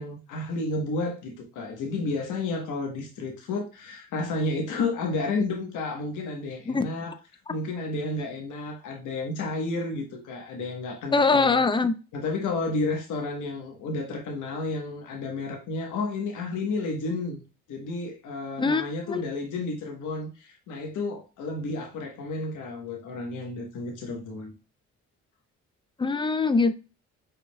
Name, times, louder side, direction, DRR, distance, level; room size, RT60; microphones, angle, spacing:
voice 1, 0.0-7.2 7.5-11.6 12.1-17.4 17.7-24.5, left 3 dB, 85° left, 1.2 m, -31 dB
voice 2, 11.1-11.9 18.6-19.2 26.0-26.7, left 4 dB, 15° left, 0.5 m, -23 dB
5.4 x 3.8 x 2.2 m
cardioid pair, 90°, 30 cm